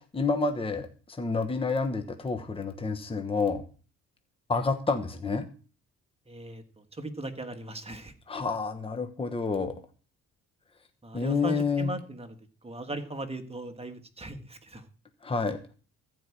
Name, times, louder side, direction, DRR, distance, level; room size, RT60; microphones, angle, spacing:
voice 1, 0.0-3.6 4.5-5.5 8.3-9.7 11.1-11.9 15.2-15.6, left 4 dB, 20° left, 7 dB, 1.1 m, -29 dB
voice 2, 6.3-8.1 11.0-12.4 12.6-14.8, right 1 dB, 20° right, 7 dB, 1.5 m, -38 dB
14.5 x 4.8 x 8.3 m, 0.39 s
cardioid pair, 90°, 30 cm